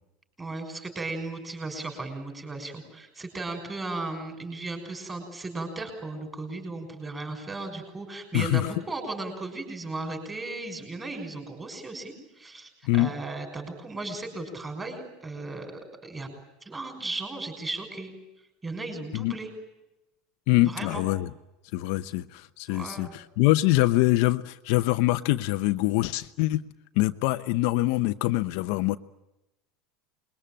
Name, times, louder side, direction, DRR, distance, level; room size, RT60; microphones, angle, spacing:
voice 1, 0.4-16.3 16.6-18.1 18.6-19.5 20.7-21.0 22.7-23.1, right 2 dB, 10° right, 5 dB, 6.1 m, -36 dB
voice 2, 8.3-8.7 12.9-13.1 19.1-19.3 20.5-21.3 21.7-26.6 27.0-29.0, left 18 dB, 55° left, 9 dB, 0.9 m, -24 dB
27.5 x 21.5 x 8.9 m, 0.95 s
cardioid pair, 175°, 0 cm